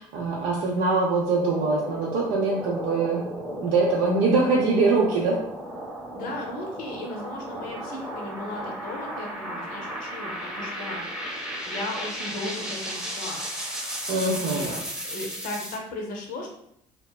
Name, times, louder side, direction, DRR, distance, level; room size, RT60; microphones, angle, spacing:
voice 1, 0.0-3.2 3.6-5.4 14.1-14.7, right 3 dB, 75° right, -3 dB, 0.5 m, -23 dB
sound 1, 1.2-15.8, equal, 5° right, 0.7 m, -35 dB
voice 2, 6.1-11.0 11.7-13.4 14.2-16.6, left 2 dB, 70° left, 1 dB, 0.6 m, -36 dB
2.8 x 2.3 x 2.2 m, 0.73 s
hypercardioid pair, 70°, 15 cm